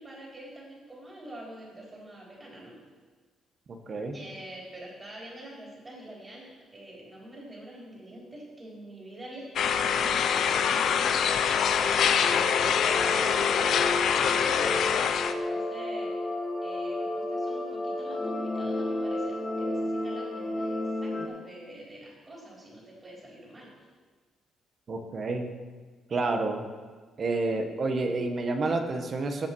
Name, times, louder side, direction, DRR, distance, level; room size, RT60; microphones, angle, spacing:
voice 1, 0.0-2.8 4.1-16.1 16.6-23.7, right 1 dB, 25° right, -4 dB, 4.0 m, -45 dB
voice 2, 3.7-4.2 24.9-25.6 26.1-26.6 27.2-29.5, right 3 dB, 45° right, 5 dB, 1.4 m, -29 dB
sound 1, 9.6-15.3, left 7 dB, 70° left, 0.6 m, -25 dB
sound 2, 11.8-21.3, left 1 dB, 30° left, 1.5 m, -32 dB
16.5 x 6.0 x 4.7 m, 1.4 s
cardioid pair, 90°, 0 cm